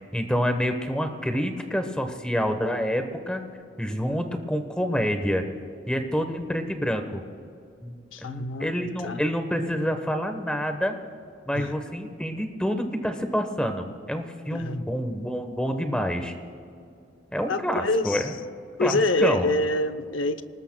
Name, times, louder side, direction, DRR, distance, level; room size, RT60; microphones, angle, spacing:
voice 1, 0.0-3.4 3.8-5.4 5.9-7.2 7.8-10.9 11.5-16.3 17.3-18.4 18.8-19.5, equal, 5° left, 6 dB, 1.1 m, -27 dB
voice 2, 8.1-9.2 11.5-11.7 14.5-14.8 17.5-18.2 18.8-20.4, left 2 dB, 90° left, 11 dB, 0.7 m, -26 dB
27.0 x 19.5 x 2.3 m, 2.5 s
head